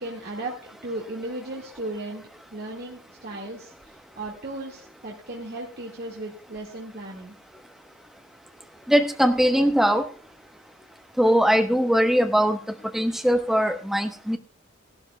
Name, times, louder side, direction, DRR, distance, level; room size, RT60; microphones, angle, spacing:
voice 1, 0.0-7.4, right 2 dB, 50° right, -2 dB, 1.9 m, -36 dB
voice 2, 8.9-10.1 11.2-14.4, equal, ahead, 5 dB, 1.0 m, -21 dB
16.5 x 12.5 x 2.2 m, 0.43 s
head